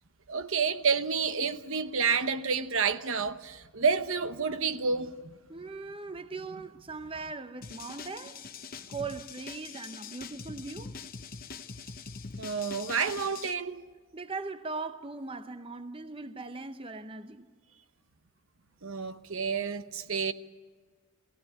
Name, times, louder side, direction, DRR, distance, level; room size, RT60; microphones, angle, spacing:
voice 1, 0.3-5.3 12.4-13.8 18.8-20.3, right 5 dB, 60° right, 0.9 m, -29 dB
voice 2, 5.5-8.4 8.9-10.9 14.1-17.5, right 3 dB, 25° right, 0.7 m, -39 dB
sound 1, 7.6-13.5, left 5 dB, 40° left, 0.8 m, -43 dB
21.0 x 16.5 x 9.9 m
head